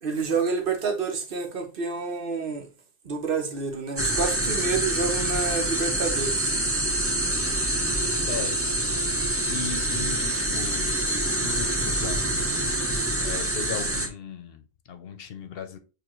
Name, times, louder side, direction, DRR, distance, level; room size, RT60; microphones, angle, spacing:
voice 1, 0.0-2.7 3.0-6.5, right 4 dB, 60° right, 1.0 m, -28 dB
sound 1, 4.0-14.1, right 1 dB, 15° right, 0.7 m, -26 dB
voice 2, 8.2-8.9 9.5-11.1 11.4-12.7 13.2-15.8, left 6 dB, 65° left, 0.8 m, -37 dB
6.7 x 2.4 x 3.0 m
omnidirectional pair, 1.1 m